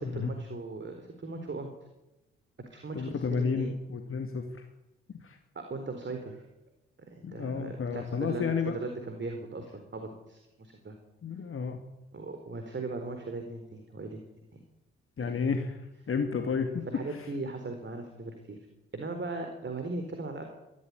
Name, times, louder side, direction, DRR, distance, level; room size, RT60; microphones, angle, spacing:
voice 1, 0.0-1.7 2.7-3.7 5.5-6.4 7.1-11.0 12.1-14.2 14.5-14.6 15.3-15.4 16.4-16.5 16.9-18.6 18.9-20.4, right 3 dB, 40° right, 5 dB, 4.3 m, -38 dB
voice 2, 2.9-4.7 5.2-5.4 7.2-8.7 11.2-11.8 15.2-15.8 16.1-16.9 17.1-17.2, left 5 dB, 45° left, 5 dB, 2.4 m, -31 dB
21.5 x 14.0 x 9.8 m, 0.96 s
hypercardioid pair, 40°, 30 cm